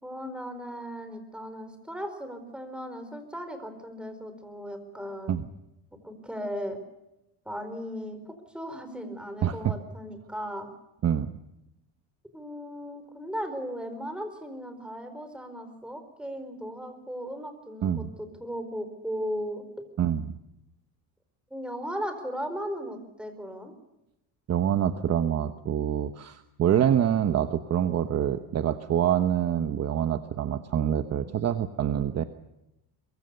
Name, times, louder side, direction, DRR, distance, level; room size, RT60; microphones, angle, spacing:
voice 1, 0.0-5.4 5.9-6.8 7.4-10.7 12.3-19.9 21.5-23.7, equal, ahead, 7 dB, 4.5 m, -37 dB
voice 2, 9.4-9.7 11.0-11.3 17.8-18.1 20.0-20.3 24.5-32.2, right 9 dB, 35° right, 9 dB, 1.2 m, -26 dB
24.0 x 23.0 x 6.9 m, 0.89 s
cardioid pair, 145°, 41 cm